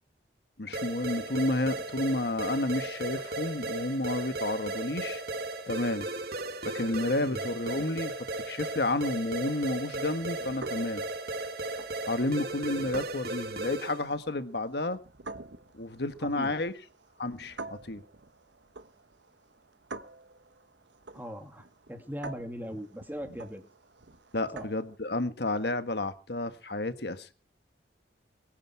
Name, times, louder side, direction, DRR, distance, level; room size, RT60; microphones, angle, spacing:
voice 1, 0.6-5.2 5.7-6.1 6.6-8.1 8.4-11.0 12.1-15.0 15.7-16.7 17.2-18.0 24.3-27.3, left 2 dB, 65° left, 1.5 m, -31 dB
sound 1, 0.7-14.1, right 2 dB, 60° right, 2.5 m, -36 dB
sound 2, 9.4-25.0, right 3 dB, 80° right, 1.2 m, -48 dB
voice 2, 16.2-16.6 21.1-23.6 24.5-24.7, equal, 10° right, 2.6 m, -39 dB
23.5 x 10.5 x 4.7 m
head